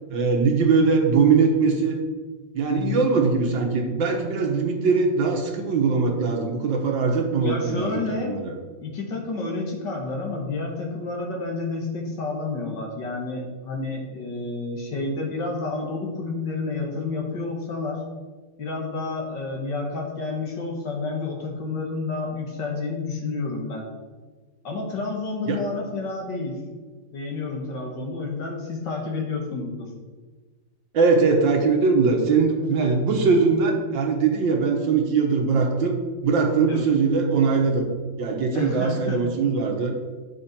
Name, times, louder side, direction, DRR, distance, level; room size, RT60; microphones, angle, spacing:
voice 1, 0.1-2.0 2.5-8.5 25.5-25.6 30.9-37.9 38.2-39.9, right 4 dB, 80° right, 2 dB, 2.0 m, -21 dB
voice 2, 2.7-3.1 7.4-8.4 8.8-18.0 18.6-23.9 24.6-26.6 27.1-29.9 36.7-36.9 38.5-39.3, left 3 dB, 65° left, -1 dB, 2.3 m, -30 dB
10.0 x 6.9 x 4.4 m, 1.3 s
omnidirectional pair, 2.0 m